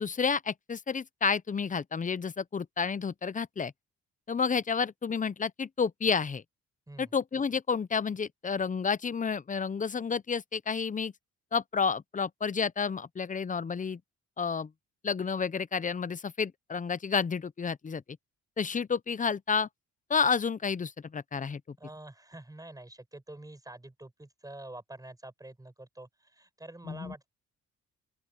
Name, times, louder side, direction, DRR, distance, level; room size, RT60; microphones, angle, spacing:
voice 1, 0.0-3.7 4.3-6.4 7.0-11.1 11.5-14.0 14.4-14.7 15.0-18.0 18.6-19.7 20.1-21.8 26.8-27.1, left 5 dB, 25° left, 0.7 m, -30 dB
voice 2, 21.8-27.3, right 1 dB, 10° right, 6.2 m, -47 dB
open air
cardioid pair, 90°, 30 cm